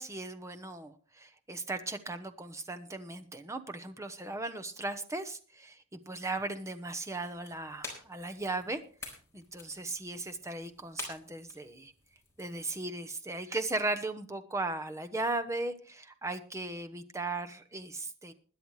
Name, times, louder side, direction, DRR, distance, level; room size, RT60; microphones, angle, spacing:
voice 1, 0.0-8.8 9.3-11.9 12.4-18.3, right 2 dB, 15° right, 7 dB, 0.9 m, -37 dB
Crackeling Fireplace, 7.2-12.8, left 3 dB, 15° left, 4.1 m, -49 dB
21.0 x 9.9 x 3.2 m, 0.40 s
head